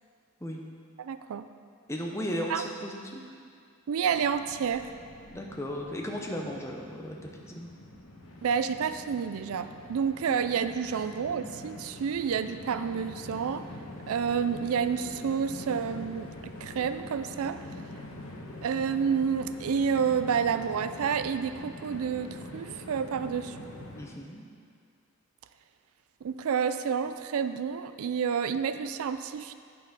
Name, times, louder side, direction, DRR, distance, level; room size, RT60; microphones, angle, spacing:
voice 1, 1.0-1.5 2.5-2.6 3.9-4.9 8.4-13.6 14.1-17.6 18.6-23.6 26.2-29.5, right 6 dB, 80° right, 11 dB, 0.4 m, -29 dB
voice 2, 1.9-3.2 5.3-7.7 24.0-24.4, equal, 15° left, 1 dB, 0.7 m, -35 dB
Train, 4.1-24.0, left 1 dB, 75° left, 1.2 m, -44 dB
9.0 x 5.7 x 6.0 m, 2.2 s
head